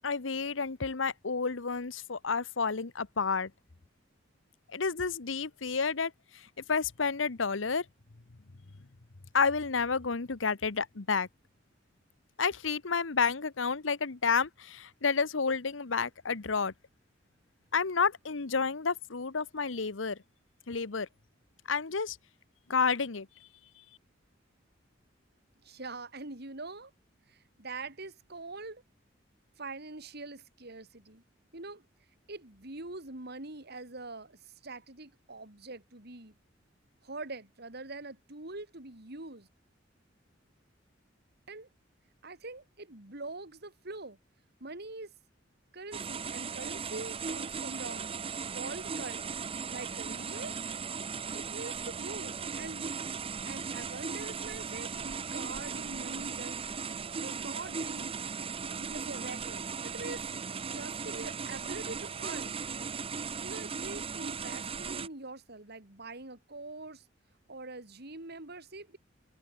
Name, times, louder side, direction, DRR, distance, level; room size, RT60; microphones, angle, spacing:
voice 1, 0.0-3.5 4.7-6.4 6.7-7.8 9.3-11.3 12.4-16.7 17.7-20.2 20.7-21.1 21.7-22.2 22.7-23.3, left 5 dB, 85° left, 1.1 m, -30 dB
voice 2, 25.6-26.9 27.3-28.8 29.6-31.2 31.5-31.8 32.3-36.3 37.0-39.5 41.5-41.7 42.2-44.2 44.6-45.1 45.7-48.1 48.5-49.3 49.7-50.6 51.3-52.9 53.5-56.8 57.2-58.2 58.8-62.6 63.4-67.0 67.5-69.0, right 3 dB, 60° right, 3.4 m, -44 dB
sound 1, 45.9-65.1, right 5 dB, 30° right, 0.7 m, -37 dB
head